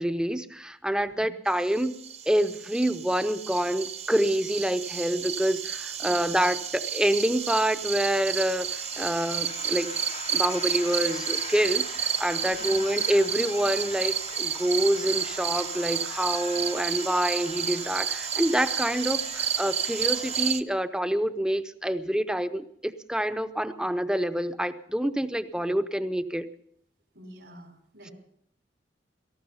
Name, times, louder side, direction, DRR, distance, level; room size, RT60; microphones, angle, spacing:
voice 1, 0.0-1.9 2.3-9.9 10.3-26.5, right 1 dB, 5° right, 11 dB, 0.7 m, -27 dB
sound 1, 1.7-20.6, right 8 dB, 40° right, 0.6 m, -31 dB
voice 2, 6.0-6.5 12.4-13.0 27.1-28.1, right 1 dB, 75° right, 3 dB, 4.4 m, -48 dB
sound 2, 6.7-20.5, left 6 dB, 40° left, 0.6 m, -43 dB
18.0 x 14.5 x 5.6 m, 0.67 s
head